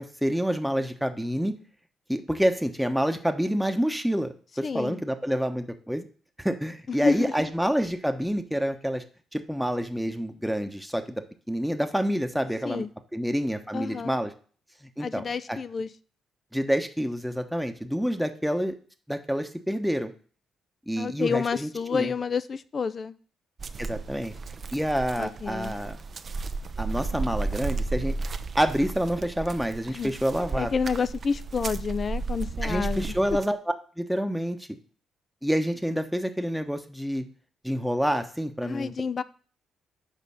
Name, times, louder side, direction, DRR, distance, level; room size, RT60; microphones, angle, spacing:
voice 1, 0.0-1.5 2.1-6.1 6.4-9.0 9.3-12.8 13.1-14.3 15.0-15.2 15.5-15.6 16.5-18.7 19.1-20.1 20.9-22.1 23.8-24.3 24.7-26.0 26.8-28.1 28.6-30.7 32.6-33.6 34.0-34.7 35.4-37.2 37.6-38.9, equal, ahead, 6 dB, 0.9 m, -28 dB
voice 2, 4.6-5.0 6.9-7.5 12.6-12.9 13.7-14.2 15.0-15.9 21.0-23.1 25.2-25.7 29.9-30.1 30.5-33.2 38.6-39.2, left 5 dB, 45° left, 14 dB, 0.5 m, -29 dB
sound 1, 23.6-33.5, right 3 dB, 50° right, 0.6 m, -33 dB
6.5 x 5.1 x 5.5 m, 0.42 s
hypercardioid pair, 45°, 0 cm